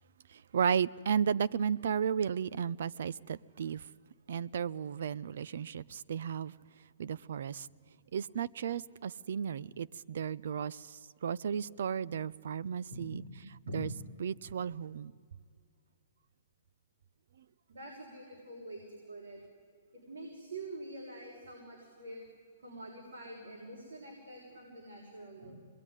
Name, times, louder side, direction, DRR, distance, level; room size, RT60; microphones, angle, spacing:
voice 1, 0.3-3.9 4.3-6.5 7.0-7.7 8.1-13.2 13.7-13.9 14.2-15.1, right 7 dB, 65° right, 0.6 m, -34 dB
voice 2, 12.9-13.8 17.7-19.4 19.9-22.2 22.6-25.6, right 1 dB, 85° right, 6.2 m, -46 dB
26.5 x 21.0 x 9.9 m
hypercardioid pair, 160°, 0 cm